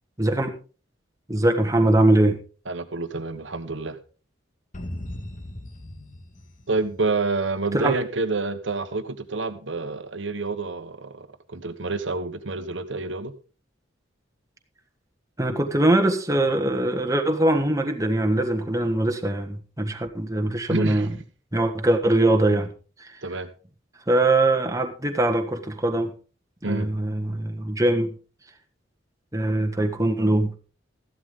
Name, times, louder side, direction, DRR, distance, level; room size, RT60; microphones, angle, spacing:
voice 1, 0.2-0.6 1.3-2.4 7.7-8.0 15.4-21.1 21.5-22.7 23.0-23.1 24.1-26.1 26.6-28.1 29.3-30.5, right 1 dB, 15° right, 4 dB, 1.5 m, -22 dB
voice 2, 2.7-4.0 6.7-13.3 20.7-21.0 23.2-23.5 26.6-26.9, right 3 dB, 70° right, 10 dB, 1.3 m, -28 dB
sound 1, 4.7-7.5, left 1 dB, 40° left, 1.9 m, -38 dB
14.5 x 11.5 x 3.8 m, 0.36 s
head